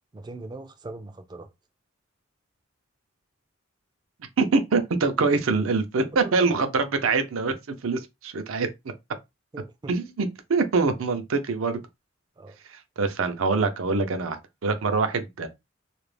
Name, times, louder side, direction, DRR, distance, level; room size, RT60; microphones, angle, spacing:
voice 1, 0.1-1.5 6.2-6.3 9.5-9.9 12.4-12.6, right 2 dB, 20° right, 0.3 m, -40 dB
voice 2, 4.4-7.5 7.8-8.7 9.9-11.8 13.0-15.5, right 4 dB, 85° right, 0.5 m, -24 dB
2.4 x 2.0 x 3.1 m
head